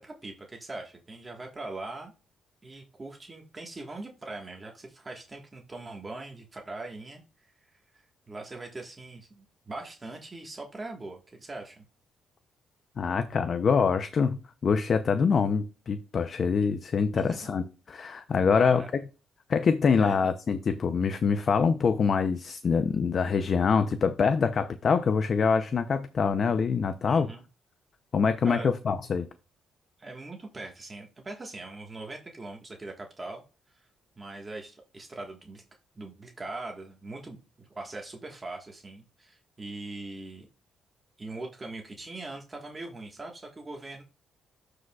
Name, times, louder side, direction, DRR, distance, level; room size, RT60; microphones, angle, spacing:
voice 1, 0.0-2.1 2.6-7.2 8.3-11.8 17.1-17.4 18.6-18.9 20.0-20.3 27.1-27.4 28.4-28.7 30.0-33.4 34.2-35.6 36.0-40.5 41.2-44.0, right 2 dB, 25° right, 1.4 m, -41 dB
voice 2, 13.0-18.8 19.5-27.3 28.1-29.3, left 5 dB, 50° left, 0.5 m, -25 dB
12.5 x 4.9 x 2.3 m
cardioid pair, 90°, 0 cm